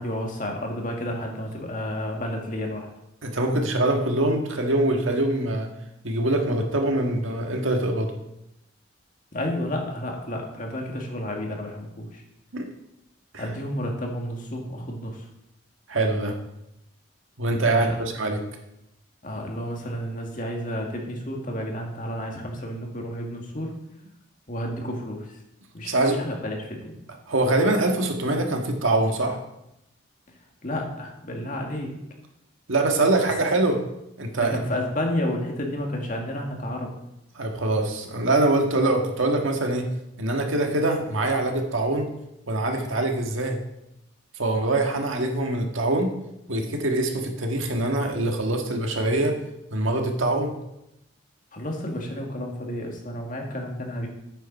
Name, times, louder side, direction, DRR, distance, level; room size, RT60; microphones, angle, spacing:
voice 1, 0.0-2.9 9.3-12.2 13.4-15.3 17.6-18.0 19.2-23.8 24.5-25.4 25.7-27.0 30.6-32.0 34.5-36.9 51.5-54.1, left 1 dB, 40° left, 1 dB, 1.9 m, -31 dB
voice 2, 3.2-5.7 6.0-8.1 12.5-12.7 13.3-13.4 15.9-16.4 17.4-18.4 25.8-26.2 27.3-29.4 32.7-33.8 34.2-34.6 37.3-39.9 40.2-42.1 42.5-43.6 44.3-46.1 46.5-49.4 49.7-50.5, right 2 dB, 85° right, 2 dB, 1.6 m, -24 dB
8.8 x 6.7 x 5.5 m, 0.85 s
head